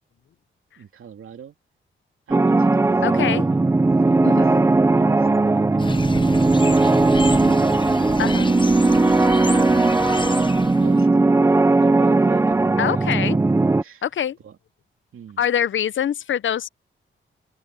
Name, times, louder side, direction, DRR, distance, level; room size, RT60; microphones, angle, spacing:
voice 1, 0.8-1.6 2.3-3.2 3.5-3.7 4.0-4.4 4.9-6.3 10.8-11.4 11.7-13.2 13.8-14.0 14.4-14.6 15.1-15.4, right 8 dB, 80° right, 2.8 m, -41 dB
sound 1, 2.3-13.8, right 3 dB, 15° right, 0.4 m, -18 dB
voice 2, 3.0-3.4 4.2-4.6 8.2-8.5 12.8-13.4 14.0-14.4 15.4-16.7, left 9 dB, 65° left, 0.6 m, -24 dB
sound 2, 5.8-11.1, left 4 dB, 25° left, 0.7 m, -31 dB
open air
wide cardioid pair, 120°, 21 cm